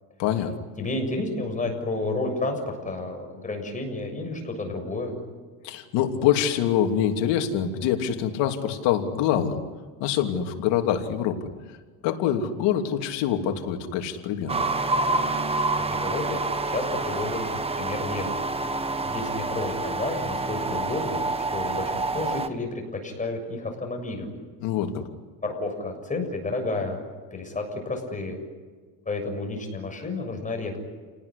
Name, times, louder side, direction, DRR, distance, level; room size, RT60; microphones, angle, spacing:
voice 1, 0.2-0.5 5.6-9.6 10.0-11.4 12.0-14.6 24.6-25.0, left 9 dB, 70° left, 4 dB, 3.1 m, -25 dB
voice 2, 0.8-5.2 15.8-16.4 16.7-18.4 19.0-21.2 21.5-24.3 25.4-27.0 27.3-28.4 29.1-30.8, left 2 dB, 15° left, 3 dB, 7.2 m, -31 dB
sound 1, 14.5-22.5, right 3 dB, 15° right, 1.4 m, -27 dB
30.0 x 19.0 x 10.0 m, 1.4 s
cardioid pair, 130°, 44 cm